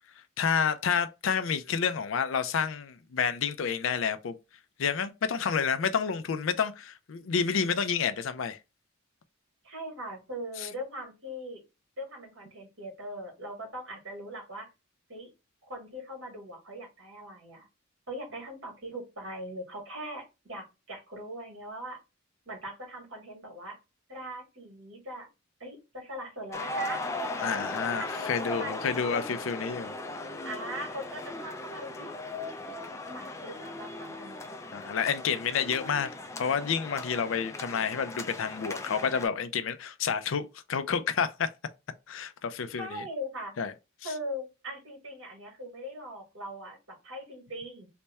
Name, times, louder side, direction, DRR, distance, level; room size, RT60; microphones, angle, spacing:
voice 1, 0.4-4.3 4.8-8.6 10.6-10.7 27.4-30.0 34.7-36.1 36.4-41.5 42.1-43.0 43.6-43.7 44.0-44.1, left 6 dB, 75° left, 0.5 m, -29 dB
voice 2, 9.6-11.6 12.0-14.7 15.1-15.3 15.6-17.7 18.1-22.0 22.4-23.8 24.1-25.3 25.6-27.0 27.5-29.3 30.4-34.6 42.7-43.5 44.0-47.9, equal, 75° right, 1.7 m, -41 dB
sound 1, 26.5-39.3, left 2 dB, 15° left, 0.3 m, -38 dB
3.3 x 2.2 x 4.1 m
head